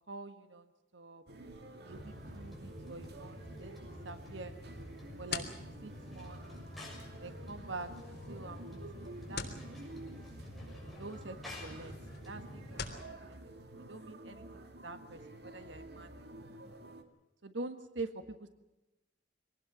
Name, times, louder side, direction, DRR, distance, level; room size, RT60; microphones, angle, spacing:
voice 1, 0.1-0.6 0.9-1.2 1.7-4.5 5.2-5.4 5.8-6.5 7.2-9.8 10.0-10.1 11.0-12.0 12.2-12.8 13.1-13.5 13.9-16.5 17.4-18.5, right 3 dB, 85° right, 9 dB, 1.6 m, -46 dB
sound 1, 1.3-17.0, right 1 dB, 60° right, 2.2 m, -51 dB
sound 2, 1.9-12.9, left 1 dB, ahead, 6.8 m, -49 dB
sound 3, 4.7-13.1, left 5 dB, 60° left, 3.3 m, -48 dB
24.5 x 19.0 x 7.2 m, 0.97 s
head